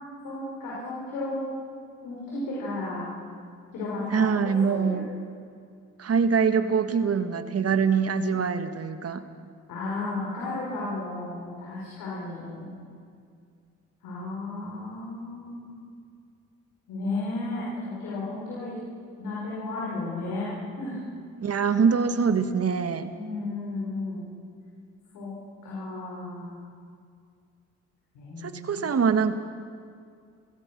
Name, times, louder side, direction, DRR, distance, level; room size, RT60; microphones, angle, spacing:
voice 1, 0.2-1.4 2.0-3.1 3.7-4.3 4.6-5.1 9.7-12.7 14.0-15.8 16.9-18.8 19.2-20.5 20.8-21.1 23.1-24.3 25.1-25.3 25.6-26.6 28.1-28.9, left 2 dB, 90° left, -6 dB, 5.3 m, -33 dB
voice 2, 4.1-5.1 6.0-9.2 21.4-23.1 28.4-29.3, right 6 dB, 50° right, 9 dB, 1.7 m, -24 dB
28.5 x 16.0 x 6.2 m, 2.3 s
supercardioid pair, 60°, 31 cm